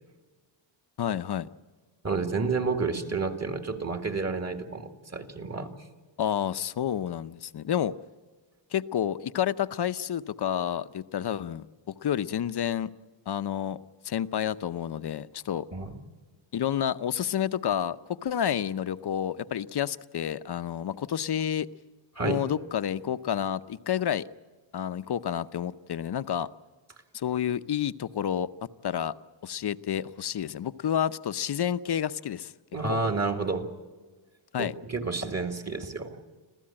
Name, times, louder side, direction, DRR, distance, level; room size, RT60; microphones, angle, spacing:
voice 1, 1.0-1.5 6.2-8.0 8.7-12.9 13.3-13.8 14.0-15.7 16.5-18.0 18.2-21.7 22.2-24.3 24.7-26.5 27.1-28.5 28.8-29.1 29.4-32.5 32.9-33.0 34.5-34.7, left 9 dB, 55° left, 13 dB, 0.8 m, -29 dB
voice 2, 2.0-5.7 15.7-16.0 22.2-22.5 32.7-33.7 34.6-36.2, right 4 dB, 35° right, 5 dB, 2.2 m, -30 dB
26.5 x 15.5 x 8.8 m, 1.3 s
wide cardioid pair, 120°, 46 cm